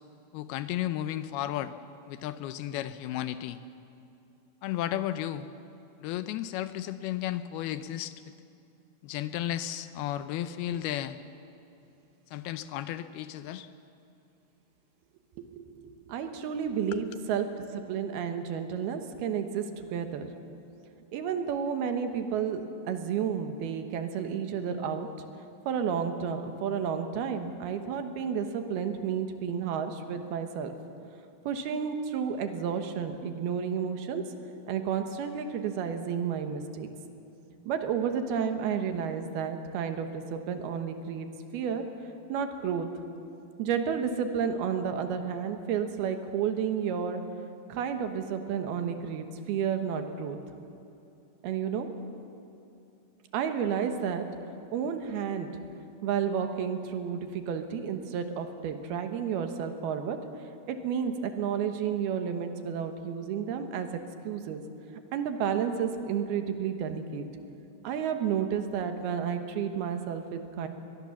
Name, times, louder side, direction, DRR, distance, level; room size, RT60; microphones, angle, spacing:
voice 1, 0.3-1.7 2.1-3.6 4.6-5.5 6.0-8.1 9.0-11.2 12.3-13.7 16.9-17.1, left 12 dB, 80° left, 12 dB, 2.5 m, -33 dB
voice 2, 15.4-17.5 17.7-20.3 21.1-25.1 25.7-30.7 31.5-34.2 34.7-36.9 37.7-41.8 42.3-42.9 43.6-47.2 47.7-50.4 51.4-51.9 53.3-54.3 54.7-55.5 56.0-60.2 60.7-63.9 64.2-64.6 65.1-67.2 67.8-70.7, right 7 dB, 75° right, 7 dB, 3.1 m, -31 dB
22.5 x 20.5 x 7.2 m, 2.7 s
omnidirectional pair, 4.8 m